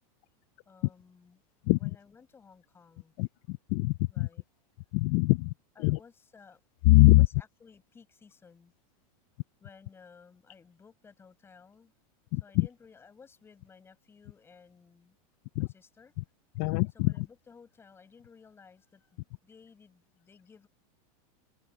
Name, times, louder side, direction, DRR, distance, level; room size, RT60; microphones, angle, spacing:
voice 1, 0.7-1.4 1.8-3.1 4.1-4.4 5.8-6.6 7.0-8.7 9.6-11.9 12.4-15.2 15.6-16.1 16.9-20.7, left 5 dB, 10° left, 7.2 m, -57 dB
voice 2, 3.2-4.3 4.9-5.5 5.8-6.0 6.9-7.3 12.3-12.7 15.6-15.7 16.6-17.1, left 23 dB, 35° left, 0.4 m, -23 dB
supercardioid pair, 165°, 19 cm